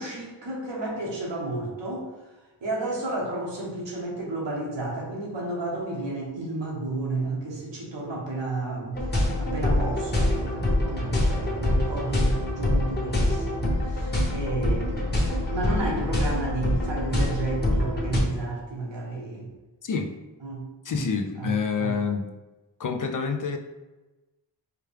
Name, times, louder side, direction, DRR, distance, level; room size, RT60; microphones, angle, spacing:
voice 1, 0.0-2.1 2.6-9.0 9.4-15.0 15.5-19.5 20.4-21.0 21.4-22.0, right 2 dB, 85° right, -2 dB, 1.2 m, -32 dB
sound 1, 8.9-18.2, left 1 dB, 25° left, 1.1 m, -25 dB
voice 2, 19.8-20.1 20.8-22.3 22.8-23.6, left 5 dB, 50° left, 6 dB, 0.5 m, -27 dB
4.7 x 2.2 x 3.3 m, 1.1 s
cardioid pair, 60°, 43 cm